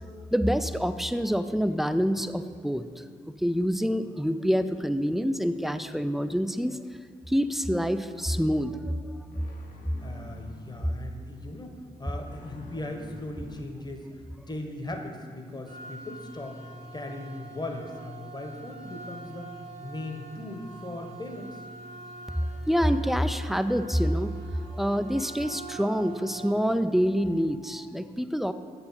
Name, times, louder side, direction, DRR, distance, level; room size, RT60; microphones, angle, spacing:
voice 1, 0.3-3.0 3.4-6.8 7.3-8.8 22.7-28.5, equal, ahead, 10 dB, 0.4 m, -26 dB
sound 1, 8.3-8.6 9.3-11.0 11.3-11.5 12.2-14.2 15.0-15.1, left 2 dB, 45° left, 0.9 m, -48 dB
voice 2, 10.0-16.6 16.9-19.5 19.8-21.6, left 1 dB, 20° left, 4 dB, 1.1 m, -38 dB
sound 2, 15.7-26.5, right 2 dB, 65° right, 1.5 m, -44 dB
7.7 x 4.3 x 5.7 m, 2.1 s
supercardioid pair, 40°, 19 cm